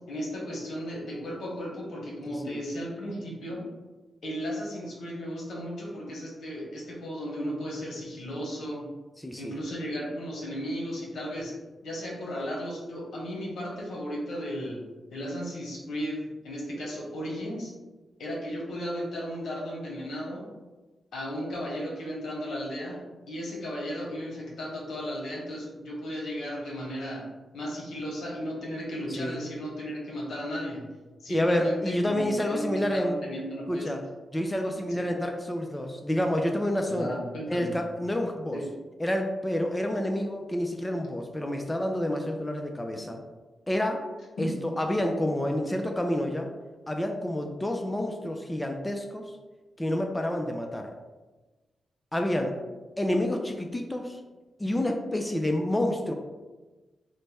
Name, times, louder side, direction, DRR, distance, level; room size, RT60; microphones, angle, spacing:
voice 1, 0.1-3.6 4.2-8.9 9.4-11.5 11.8-14.8 15.1-17.7 18.2-20.5 21.1-23.0 23.3-27.3 27.5-30.8 31.2-33.9 34.9-35.1 36.9-37.7 38.5-38.6 44.4-44.6, equal, 80° left, -3 dB, 1.0 m, -35 dB
voice 2, 2.3-2.6 9.2-9.5 29.1-29.4 31.3-33.2 33.7-34.0 34.3-37.2 37.5-38.6 39.0-43.2 43.7-44.1 44.4-46.5 46.9-49.3 49.8-50.9 52.1-52.6 53.0-54.2 54.6-56.1, left 1 dB, 15° left, 3 dB, 0.4 m, -28 dB
3.1 x 2.2 x 4.1 m, 1.2 s
cardioid pair, 55°, 0 cm